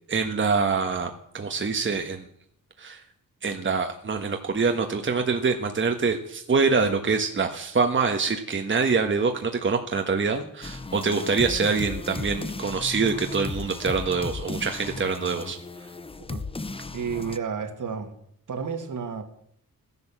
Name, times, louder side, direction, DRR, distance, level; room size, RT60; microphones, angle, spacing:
voice 1, 0.1-2.3 2.8-3.0 3.4-15.6, right 4 dB, 35° right, 5 dB, 1.5 m, -25 dB
sound 1, 10.6-17.4, left 3 dB, 15° left, 0.8 m, -35 dB
voice 2, 16.9-18.2 18.5-19.2, right 6 dB, 65° right, 6 dB, 2.6 m, -31 dB
16.5 x 11.0 x 7.5 m, 0.67 s
wide cardioid pair, 130°, 34 cm